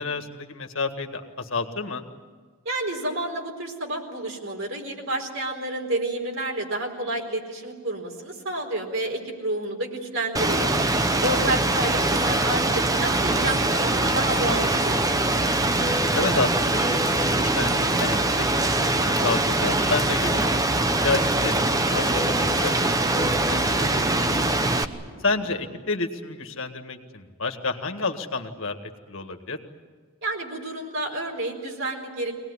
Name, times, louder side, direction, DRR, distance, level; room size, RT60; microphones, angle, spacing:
voice 1, 0.0-2.0 11.2-11.5 15.7-20.6 21.0-24.6 25.2-28.8 29.1-29.6, left 3 dB, 65° left, 5 dB, 1.8 m, -30 dB
voice 2, 2.6-10.7 11.2-15.0 30.2-32.3, right 1 dB, 65° right, 2 dB, 4.3 m, -29 dB
Rain, 10.3-24.8, right 2 dB, 15° right, 0.8 m, -23 dB
Fixed-wing aircraft airplane, 15.8-19.6 19.9-25.8, left 2 dB, 50° right, 3.5 m, -39 dB
24.5 x 19.0 x 9.8 m, 1.5 s
head